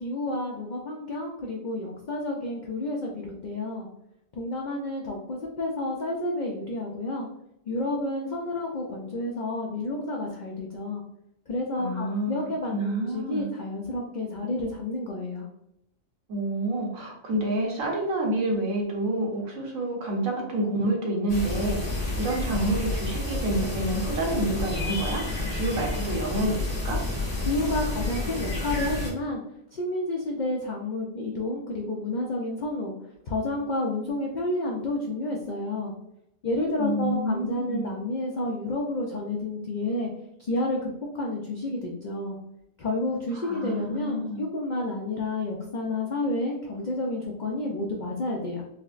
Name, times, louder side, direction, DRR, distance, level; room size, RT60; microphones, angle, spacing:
voice 1, 0.0-3.9 4.4-7.3 7.7-11.0 11.5-15.5 27.4-29.4 29.7-32.9 33.3-35.9 36.4-40.1 40.4-40.9 41.1-42.4 42.8-48.6, left 2 dB, 90° left, -1 dB, 0.4 m, -30 dB
voice 2, 11.8-12.3 12.7-13.5 16.3-25.2 25.5-27.0 36.8-37.9 43.3-44.4, right 1 dB, 75° right, 0 dB, 1.2 m, -28 dB
sound 1, 21.3-29.1, left 2 dB, 30° left, 1.1 m, -30 dB
4.2 x 2.0 x 2.4 m, 0.80 s
omnidirectional pair, 1.4 m